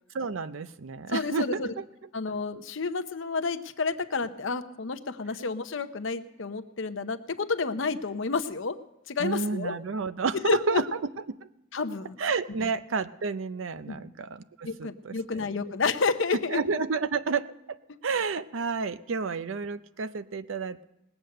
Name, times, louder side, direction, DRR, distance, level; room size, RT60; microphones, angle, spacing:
voice 1, 0.1-1.8 9.2-10.9 11.3-11.4 12.2-15.4 16.5-17.8 18.0-20.8, right 5 dB, 70° right, 14 dB, 0.5 m, -30 dB
voice 2, 1.1-1.7 2.1-8.8 9.1-9.7 10.4-10.8 11.7-12.2 13.9-14.0 14.6-16.6, left 4 dB, 65° left, 10 dB, 0.8 m, -30 dB
19.5 x 8.0 x 6.6 m, 0.90 s
head